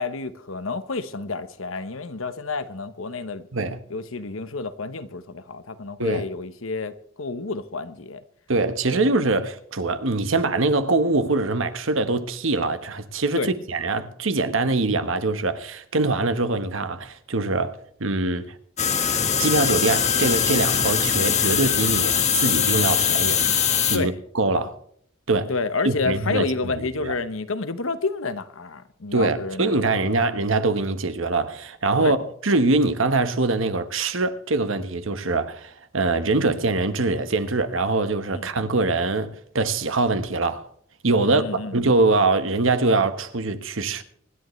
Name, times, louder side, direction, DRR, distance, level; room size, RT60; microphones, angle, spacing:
voice 1, 0.0-3.5 3.9-8.2 8.9-9.0 13.3-13.5 23.9-24.1 25.5-30.2 32.0-32.2 38.3-38.5 41.2-41.7, left 3 dB, 75° left, 1.1 m, -29 dB
voice 2, 3.5-3.8 6.0-6.3 8.5-18.5 19.4-23.4 23.9-24.8 25.3-25.5 25.8-27.1 29.1-40.7 41.0-44.0, right 3 dB, 70° right, 1.3 m, -23 dB
sound 1, 18.8-24.0, left 8 dB, 35° left, 1.4 m, -21 dB
25.0 x 11.0 x 3.2 m
head